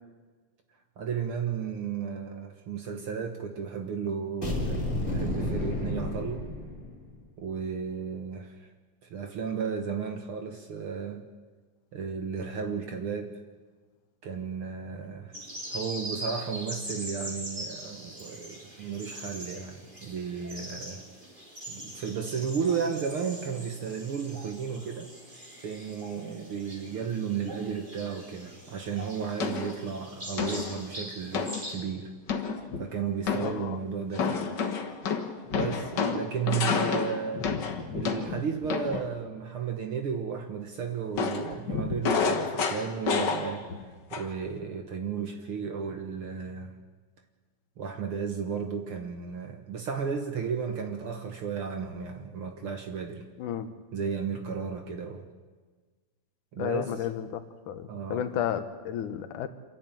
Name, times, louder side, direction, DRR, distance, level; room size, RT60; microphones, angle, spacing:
voice 1, 1.0-6.5 7.4-8.7 9.0-11.2 11.9-13.3 14.2-15.3 15.7-21.0 21.7-25.1 25.6-32.1 32.8-34.5 35.5-37.5 37.9-43.7 44.1-46.8 47.8-53.3 53.9-55.3 56.5-56.9 57.9-58.3, right 6 dB, 55° right, 5 dB, 1.7 m, -34 dB
sound 1, 4.4-7.2, left 1 dB, 25° left, 3.8 m, -31 dB
sound 2, 15.3-31.8, right 1 dB, 15° right, 3.7 m, -42 dB
sound 3, 29.4-29.8 30.4-30.8 31.3-31.6 32.3-32.9 33.3-33.6 34.1-39.1 41.2-43.8 44.1-44.5, left 5 dB, 45° left, 1.5 m, -30 dB
voice 2, 33.4-33.8 53.4-53.7 56.6-57.4 57.7-59.5, left 10 dB, 80° left, 10 dB, 2.6 m, -32 dB
27.0 x 11.0 x 9.0 m, 1.4 s
omnidirectional pair, 3.6 m